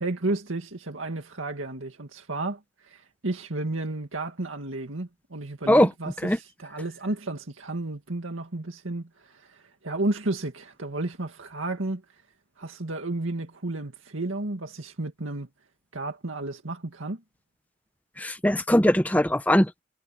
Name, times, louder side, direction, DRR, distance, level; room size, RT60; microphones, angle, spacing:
voice 1, 0.0-12.0 12.6-15.5 15.9-17.2, right 2 dB, 90° right, 2.1 m, -32 dB
voice 2, 18.2-19.8, left 1 dB, 10° left, 0.9 m, -20 dB
head